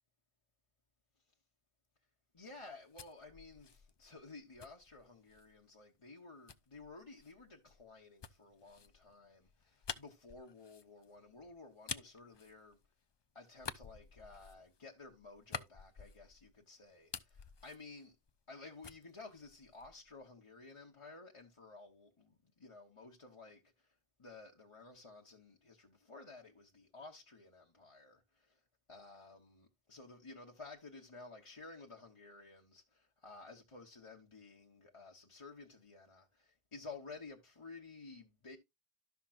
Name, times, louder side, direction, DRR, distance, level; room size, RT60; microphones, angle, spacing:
voice 1, 2.3-12.8 13.3-18.1 18.5-28.6 28.9-38.6, left 3 dB, 30° left, 1.0 m, -54 dB
sound 1, 2.6-5.6 6.5-13.1 13.5-16.6 16.9-18.6 18.8-20.1, left 6 dB, 45° left, 0.3 m, -50 dB
13.0 x 5.8 x 2.4 m
omnidirectional pair, 1.1 m